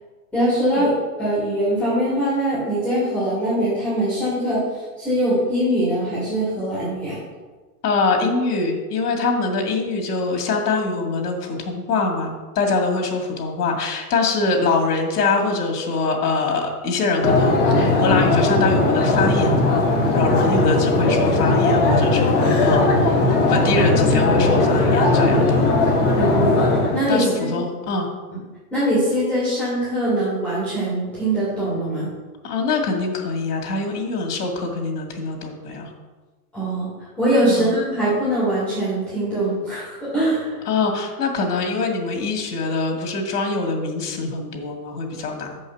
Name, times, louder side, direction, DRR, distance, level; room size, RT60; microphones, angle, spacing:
voice 1, 0.3-7.2 26.1-26.5 26.9-27.6 28.3-28.4 28.7-32.1 36.5-36.9 37.2-40.6, right 1 dB, 5° left, -12 dB, 2.9 m, -22 dB
voice 2, 7.8-19.8 20.1-25.6 27.1-28.1 32.4-35.9 37.5-37.8 40.7-45.6, left 3 dB, 85° left, 2 dB, 2.2 m, -24 dB
sound 1, 17.2-27.0, left 2 dB, 30° left, 2.3 m, -18 dB
7.1 x 5.5 x 5.7 m, 1.3 s
supercardioid pair, 160°, 46 cm